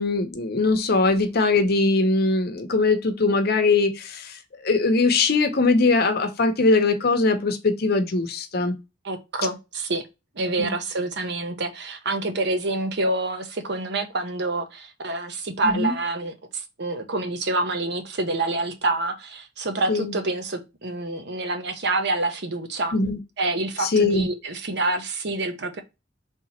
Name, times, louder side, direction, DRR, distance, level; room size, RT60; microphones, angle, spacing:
voice 1, 0.0-8.7 10.6-10.7 15.6-15.9 19.9-20.2 22.9-23.2 23.8-24.3, left 3 dB, 55° left, 0.8 m, -21 dB
voice 2, 9.0-10.1 10.4-22.9 23.4-25.8, right 2 dB, 65° right, 0.8 m, -27 dB
3.6 x 2.9 x 4.2 m
head